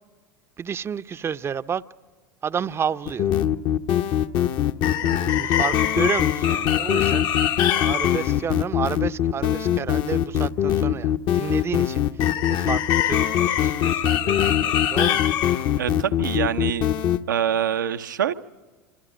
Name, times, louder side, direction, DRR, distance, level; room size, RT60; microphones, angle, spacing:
voice 1, 0.6-1.8 2.4-3.3 5.4-15.3, right 7 dB, 25° right, 0.6 m, -31 dB
sound 1, 3.1-17.2, left 10 dB, 45° left, 0.8 m, -22 dB
voice 2, 15.8-16.9 17.3-18.3, right 9 dB, 80° right, 0.8 m, -25 dB
26.5 x 26.0 x 5.2 m
hypercardioid pair, 85°, 10 cm